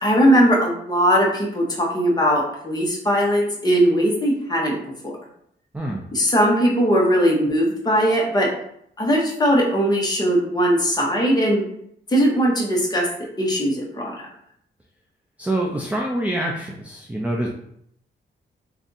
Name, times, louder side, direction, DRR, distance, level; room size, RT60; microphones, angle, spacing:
voice 1, 0.0-4.8 5.0-5.2 6.1-8.5 9.0-11.6 12.1-13.1 13.4-14.3, equal, 20° left, -2 dB, 1.0 m, -19 dB
voice 2, 15.4-17.5, right 1 dB, 5° right, -1 dB, 0.4 m, -25 dB
3.5 x 2.6 x 4.0 m, 0.70 s
wide cardioid pair, 155°, 19 cm